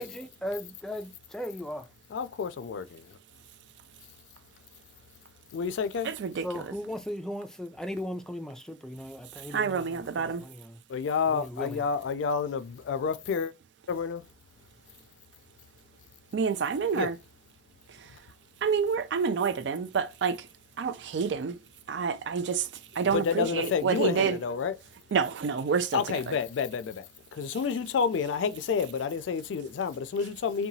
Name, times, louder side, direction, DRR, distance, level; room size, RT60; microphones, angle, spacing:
voice 1, 0.0-1.8 6.4-10.8 11.3-11.8, equal, 5° left, 0.3 m, -37 dB
voice 2, 2.1-3.0 5.5-6.1 10.9-13.5 13.9-14.2 16.9-17.1 23.1-24.7 25.9-27.0 27.3-30.7, left 6 dB, 85° left, 0.3 m, -29 dB
voice 3, 6.0-6.6 9.5-10.4 16.3-17.2 18.6-20.5 20.8-21.6 21.9-22.7 23.0-24.4 25.1-26.4, right 6 dB, 70° right, 0.4 m, -28 dB
2.8 x 2.2 x 2.6 m
head